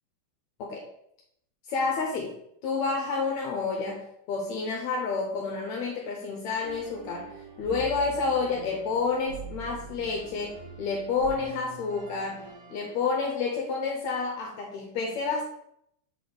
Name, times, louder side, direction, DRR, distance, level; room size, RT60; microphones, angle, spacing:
voice 1, 1.7-2.4 2.6-15.5, left 4 dB, 75° left, 0 dB, 1.9 m, -29 dB
sound 1, 6.6-13.3, right 3 dB, 85° right, 4.0 m, -44 dB
7.6 x 3.5 x 3.8 m, 0.75 s
omnidirectional pair, 3.6 m